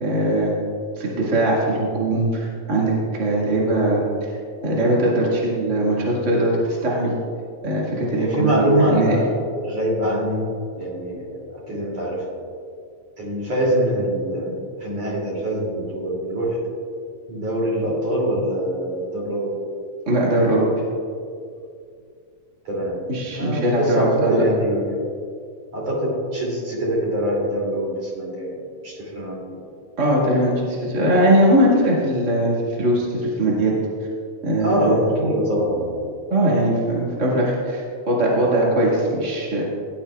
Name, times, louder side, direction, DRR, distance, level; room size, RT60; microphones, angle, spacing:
voice 1, 0.0-0.5 1.0-4.3 4.6-7.1 7.6-9.2 20.1-20.7 23.1-24.4 30.0-33.7 34.4-35.0 36.3-39.6, right 1 dB, 30° right, -5 dB, 1.8 m, -20 dB
voice 2, 8.1-9.3 9.6-12.2 13.2-16.6 17.3-19.5 22.7-23.0 23.4-25.0 25.7-29.4 34.6-36.2, equal, 60° right, -5 dB, 3.8 m, -24 dB
17.5 x 10.0 x 2.3 m, 2.3 s
omnidirectional pair, 3.4 m